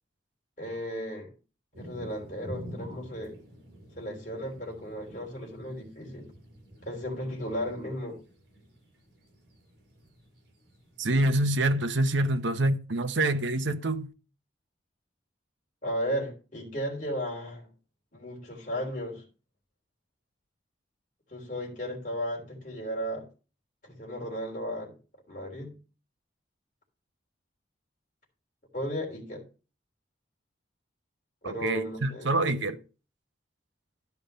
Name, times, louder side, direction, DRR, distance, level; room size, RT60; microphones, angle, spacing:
voice 1, 0.6-1.3 1.8-3.3 4.0-6.3 6.8-8.2 15.8-17.7 18.1-19.2 21.3-23.3 23.8-24.9 25.3-25.7 28.7-29.4 31.4-32.7, equal, 40° left, 3.3 m, -35 dB
sound 1, 1.7-11.3, equal, 55° right, 4.6 m, -48 dB
voice 2, 11.0-14.1 31.4-32.8, right 1 dB, 80° right, 1.0 m, -26 dB
12.0 x 5.3 x 5.4 m
head